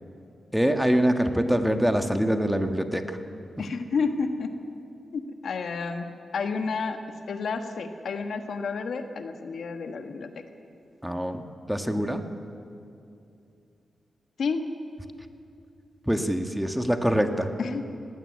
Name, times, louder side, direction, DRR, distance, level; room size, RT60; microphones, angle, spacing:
voice 1, 0.5-3.2 11.0-12.3 16.1-17.5, equal, 5° right, 5 dB, 1.5 m, -24 dB
voice 2, 3.6-4.5 5.1-7.0 7.3-10.3 14.4-14.7 17.6-17.8, left 4 dB, 75° left, 6 dB, 1.5 m, -30 dB
19.0 x 16.0 x 9.7 m, 2.5 s
cardioid pair, 80°, 0 cm